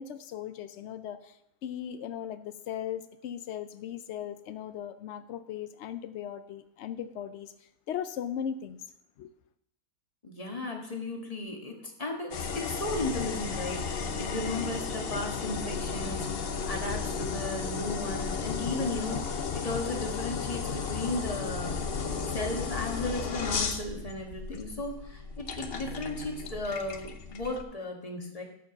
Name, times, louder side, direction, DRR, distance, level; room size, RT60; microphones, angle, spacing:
voice 1, 0.0-7.5 7.9-8.8 9.2-9.3, left 9 dB, 90° left, 0.6 m, -38 dB
voice 2, 10.2-21.8 22.3-28.4, left 2 dB, 25° left, 1.5 m, -35 dB
sound 1, 12.3-27.6, left 6 dB, 50° left, 0.7 m, -34 dB
sound 2, 14.0-26.5, right 2 dB, 45° right, 1.4 m, -48 dB
13.0 x 4.7 x 5.9 m
omnidirectional pair, 1.8 m